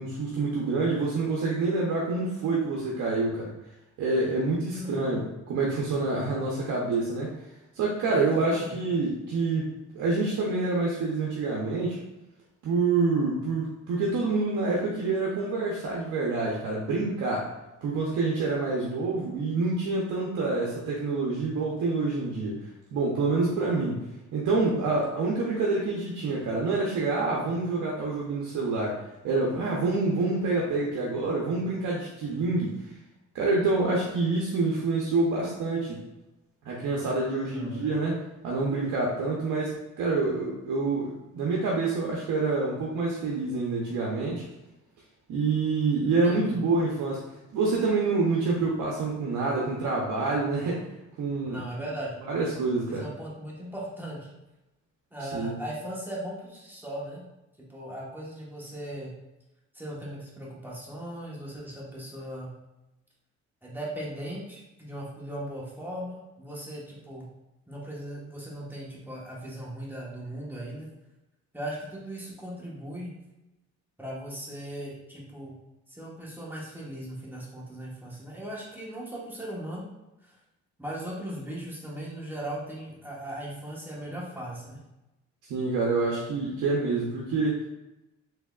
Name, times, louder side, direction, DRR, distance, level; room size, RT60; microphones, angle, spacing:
voice 1, 0.0-3.5 4.0-7.3 7.7-9.7 9.9-12.0 12.6-17.5 17.8-22.6 22.9-32.7 33.3-36.0 36.6-38.2 38.4-44.4 45.3-47.2 47.5-50.8 51.2-51.9 52.2-53.1 55.2-55.5 85.5-87.6, right 3 dB, 75° right, -3 dB, 0.7 m, -27 dB
voice 2, 4.7-5.3 8.1-8.7 37.4-37.9 46.0-46.7 51.4-52.1 52.9-54.3 55.1-57.2 57.7-59.2 59.7-62.5 63.6-67.3 67.7-70.9 71.5-73.1 74.0-75.5 75.9-79.9 80.2-80.4 80.8-84.8, right 1 dB, 5° right, -5 dB, 1.1 m, -38 dB
3.4 x 3.3 x 2.3 m, 0.97 s
cardioid pair, 90°, 30 cm